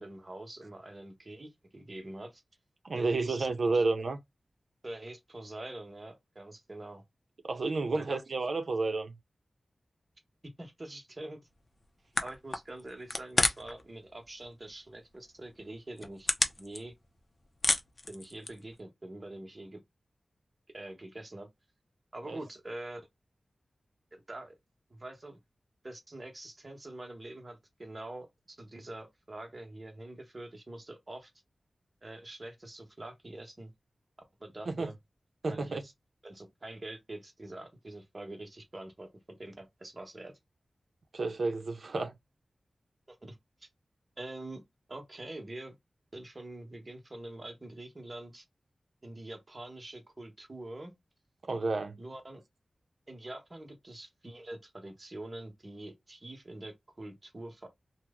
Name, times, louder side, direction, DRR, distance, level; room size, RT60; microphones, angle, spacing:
voice 1, 0.0-2.4 2.9-3.8 4.8-7.0 7.9-8.2 10.6-11.4 12.2-16.3 16.6-16.9 18.1-19.8 20.7-21.5 22.1-23.0 24.1-24.5 24.9-25.4 25.8-31.3 32.0-33.7 34.4-35.0 35.5-35.9 36.2-40.3 43.1-43.4 43.6-43.7 44.2-44.6 44.9-45.8 46.1-48.4 49.0-50.9 52.0-52.4 53.1-57.7, right 1 dB, 30° right, 1.0 m, -45 dB
voice 2, 2.8-4.2 7.4-9.2 22.3-22.4 34.7-34.9 35.4-35.8 41.1-42.1 51.5-52.0, right 3 dB, 65° right, 0.7 m, -31 dB
sound 1, 11.8-11.9 12.1-13.8 14.1-14.7 15.1-15.2 15.8-17.2 17.5-18.7, left 2 dB, 35° left, 0.6 m, -30 dB
2.9 x 2.1 x 3.6 m
wide cardioid pair, 95°, 0 cm